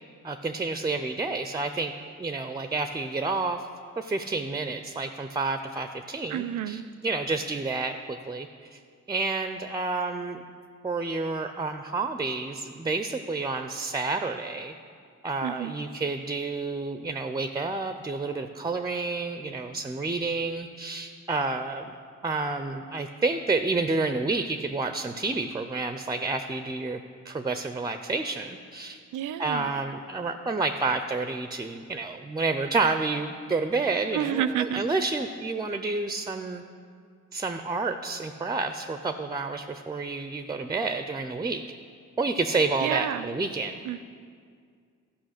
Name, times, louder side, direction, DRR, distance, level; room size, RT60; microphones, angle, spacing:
voice 1, 0.2-1.9 2.2-3.6 4.0-8.8 9.1-10.4 10.8-14.7 15.2-22.0 22.2-29.0 29.4-36.6 37.3-41.6 42.2-43.8, right 3 dB, 15° right, 8 dB, 0.3 m, -29 dB
voice 2, 6.3-6.9 15.4-15.7 29.1-29.7 34.1-34.8 42.8-43.3 43.8-44.0, right 10 dB, 80° right, 14 dB, 0.5 m, -29 dB
13.0 x 5.6 x 6.4 m, 2.2 s
cardioid pair, 120°, 30 cm